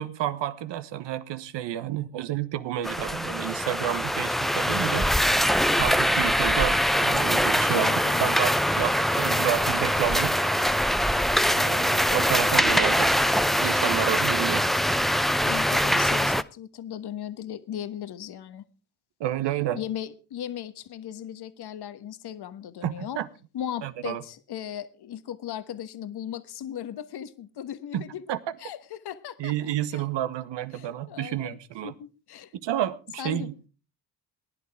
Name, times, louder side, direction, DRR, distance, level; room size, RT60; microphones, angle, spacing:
voice 1, 0.0-5.1 5.8-7.9 8.2-10.3 11.4-13.2 13.5-14.7 19.2-19.8 22.8-23.3 23.8-24.2 27.9-28.0 28.3-28.4 29.4-31.9 32.6-33.5, right 12 dB, 60° right, 1.3 m, -30 dB
sound 1, 2.8-16.4, equal, ahead, 0.6 m, -23 dB
voice 2, 7.7-8.3 15.4-18.6 19.7-23.2 23.5-28.2 28.6-30.1 30.7-31.6 31.8-32.5 33.2-33.5, left 10 dB, 55° left, 1.3 m, -37 dB
19.5 x 11.0 x 3.5 m
hypercardioid pair, 50°, 47 cm